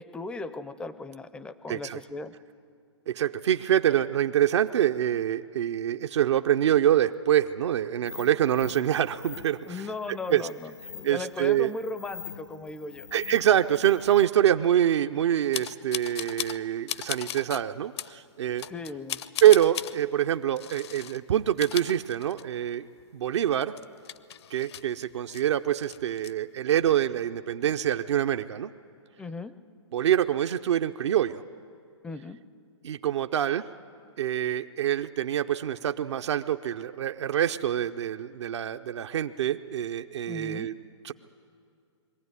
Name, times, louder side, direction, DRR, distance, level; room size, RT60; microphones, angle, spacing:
voice 1, 0.0-2.3 9.7-13.1 18.7-19.2 29.2-29.5 32.0-32.4 40.3-40.7, left 3 dB, 5° left, 13 dB, 0.4 m, -37 dB
voice 2, 1.7-2.0 3.1-10.5 11.0-11.7 13.1-18.7 19.4-22.9 23.1-23.7 24.5-28.7 29.9-31.4 32.8-33.7 34.2-40.7 41.0-41.1, right 11 dB, 70° right, 7 dB, 0.6 m, -25 dB
sound 1, 8.1-14.3, left 7 dB, 85° left, 1.4 m, -45 dB
sound 2, 15.5-16.6 16.9-17.6 18.0-18.1 18.6-19.9 20.6-21.2 21.5-22.7 23.0-23.1 23.5-25.4 25.8-26.3, left 10 dB, 60° left, 0.6 m, -36 dB
22.0 x 15.0 x 9.6 m, 2.4 s
hypercardioid pair, 145°, 15 cm